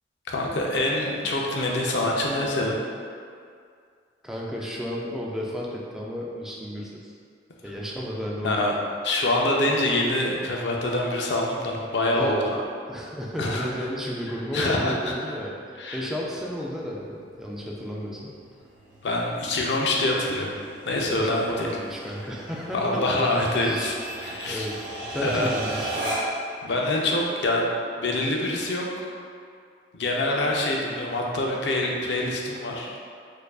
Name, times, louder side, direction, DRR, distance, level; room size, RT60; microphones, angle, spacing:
voice 1, 0.3-2.8 8.4-8.7 9.0-12.6 13.4-13.7 14.5-14.9 15.8-16.0 19.0-20.5 20.9-21.7 22.7-24.7 25.2-25.5 26.6-27.6 28.0-29.1 29.9-33.0, left 1 dB, 65° left, -1 dB, 0.5 m, -25 dB
voice 2, 4.2-7.1 7.6-8.8 12.1-15.5 15.9-18.3 21.2-23.0 23.6-23.9 24.3-24.8 25.1-26.0, equal, ahead, -4 dB, 0.3 m, -33 dB
sound 1, 16.3-26.5, right 1 dB, 40° right, 1.1 m, -37 dB
4.3 x 2.5 x 2.3 m, 2.2 s
head